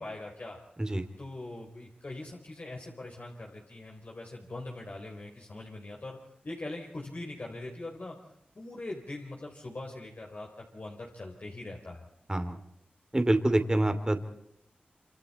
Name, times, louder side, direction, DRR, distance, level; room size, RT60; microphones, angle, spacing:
voice 1, 0.0-0.6 1.2-6.2 6.4-8.2 8.5-12.0, left 2 dB, 50° left, -1 dB, 4.2 m, -42 dB
voice 2, 13.1-14.2, right 1 dB, 20° right, 8 dB, 2.9 m, -26 dB
26.5 x 26.5 x 4.4 m, 0.73 s
cardioid pair, 55°, 3 cm